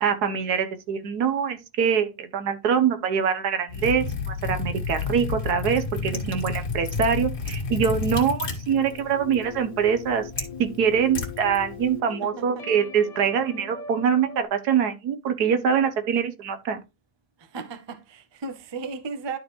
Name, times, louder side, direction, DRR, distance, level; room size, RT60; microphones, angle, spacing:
voice 1, 0.0-16.8, right 7 dB, 75° right, 1.4 m, -24 dB
Liquid, 3.7-12.0, left 5 dB, 75° left, 2.1 m, -31 dB
voice 2, 6.1-6.5 12.2-12.7 17.4-19.4, right 4 dB, 30° right, 0.5 m, -36 dB
sound 1, 8.7-14.4, left 6 dB, 35° left, 0.7 m, -41 dB
12.0 x 4.2 x 3.1 m
omnidirectional pair, 1.7 m